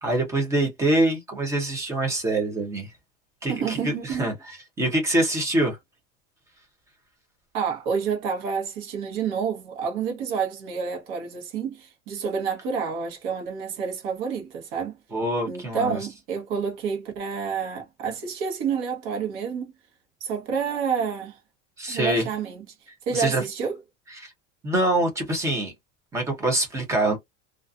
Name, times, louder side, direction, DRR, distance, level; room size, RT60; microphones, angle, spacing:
voice 1, 0.0-2.9 3.4-5.8 15.1-16.0 21.8-22.3 23.1-23.4 24.2-24.3 24.6-25.7 26.1-27.2, right 1 dB, 10° right, 0.5 m, -25 dB
voice 2, 3.5-4.3 7.5-15.0 15.5-19.7 20.2-21.4 21.9-22.6 23.1-23.8, right 6 dB, 50° right, 1.1 m, -29 dB
2.4 x 2.4 x 2.4 m
cardioid pair, 180°, 37 cm